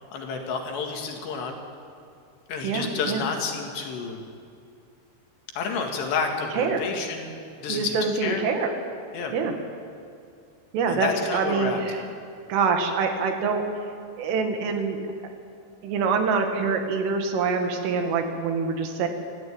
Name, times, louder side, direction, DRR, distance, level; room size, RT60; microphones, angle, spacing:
voice 1, 0.1-1.6 2.5-4.2 5.6-7.3 7.6-8.0 8.2-8.4 9.1-9.4 10.9-12.1, left 5 dB, 65° left, 2 dB, 3.9 m, -30 dB
voice 2, 2.6-3.2 6.5-6.8 7.7-8.7 9.3-9.6 10.7-12.1 12.5-13.6 14.2-15.0 15.8-19.1, right 5 dB, 80° right, 4 dB, 4.4 m, -25 dB
26.5 x 14.5 x 8.7 m, 2.4 s
omnidirectional pair, 5.7 m